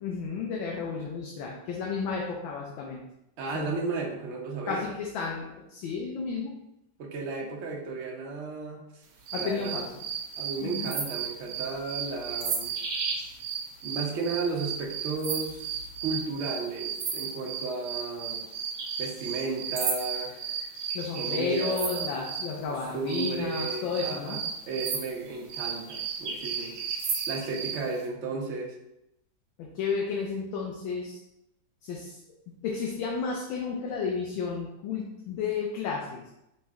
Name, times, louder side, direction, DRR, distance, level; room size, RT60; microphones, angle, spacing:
voice 1, 0.0-3.0 3.5-3.7 4.7-6.5 9.3-10.1 10.6-10.9 20.9-24.4 29.6-31.2 31.8-32.2 32.6-36.2, left 5 dB, 85° left, -2 dB, 1.4 m, -32 dB
voice 2, 3.4-4.9 7.0-9.0 9.4-9.8 10.4-12.8 13.8-18.4 19.0-20.4 21.2-22.1 22.7-26.8 27.3-28.8, right 3 dB, 60° right, 0 dB, 0.8 m, -34 dB
sound 1, 9.3-22.5 23.1-27.8, right 6 dB, 75° right, 1.4 m, -34 dB
5.7 x 2.1 x 3.5 m, 0.84 s
omnidirectional pair, 2.1 m